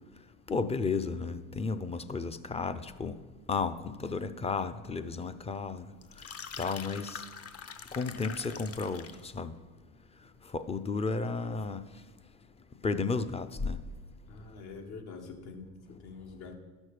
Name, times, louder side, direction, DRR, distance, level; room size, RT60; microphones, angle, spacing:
voice 1, 0.5-3.2 3.5-5.9 6.6-7.2 8.0-9.1 9.3-9.5 10.5-11.8 12.8-13.8, left 4 dB, 15° left, 11 dB, 0.4 m, -33 dB
sound 1, 6.0-9.3, left 6 dB, 35° left, 0.8 m, -44 dB
voice 2, 14.3-16.6, left 4 dB, 60° left, 4 dB, 1.7 m, -45 dB
12.5 x 6.3 x 5.0 m, 1.3 s
supercardioid pair, 90°, 42 cm